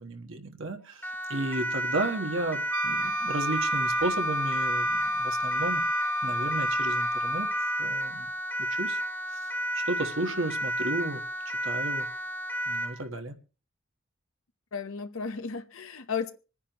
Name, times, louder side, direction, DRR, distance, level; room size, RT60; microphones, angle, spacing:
voice 1, 0.0-5.8 6.2-7.5 7.8-8.3 8.7-9.0 9.3-9.5 9.7-12.1 12.7-13.3, right 2 dB, 70° right, 1.3 m, -33 dB
Siren, 1.0-13.0, right 1 dB, 10° left, 1.5 m, -32 dB
Wind instrument woodwind instrument, 2.7-7.9, left 1 dB, 90° right, 0.8 m, -30 dB
voice 2, 14.7-16.3, left 5 dB, 80° left, 0.9 m, -34 dB
25.5 x 9.8 x 3.0 m
head